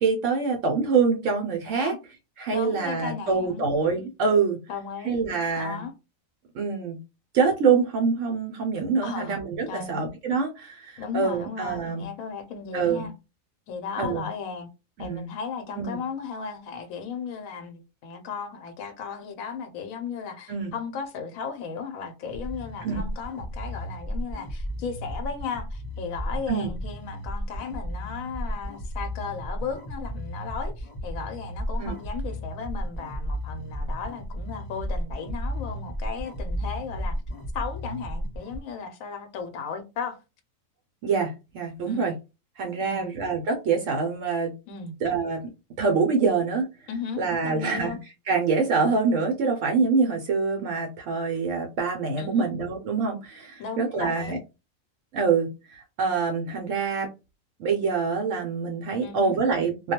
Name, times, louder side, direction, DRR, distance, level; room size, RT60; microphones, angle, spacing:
voice 1, 0.0-1.9 2.4-4.6 5.0-5.8 6.5-7.0 7.3-12.1 12.7-13.1 14.0-14.2 15.0-15.3 15.8-16.0 20.5-20.7 22.8-23.0 26.5-26.7 31.8-31.9 41.0-42.1 42.6-44.5 45.0-45.4 45.8-46.7 47.2-48.0 48.3-54.4 55.1-57.1 57.6-59.9, right 5 dB, 70° right, 0.9 m, -25 dB
voice 2, 2.5-3.6 4.7-5.2 5.6-5.9 9.0-9.4 9.7-10.0 11.0-13.1 13.7-14.7 15.0-37.1 37.5-40.2 41.9-42.2 42.8-43.1 44.7-44.9 46.9-48.0 52.2-52.5 53.6-54.4 59.0-59.3, left 6 dB, 85° left, 1.0 m, -35 dB
sound 1, 22.2-38.6, equal, 35° left, 0.6 m, -33 dB
2.3 x 2.2 x 2.8 m
omnidirectional pair, 1.4 m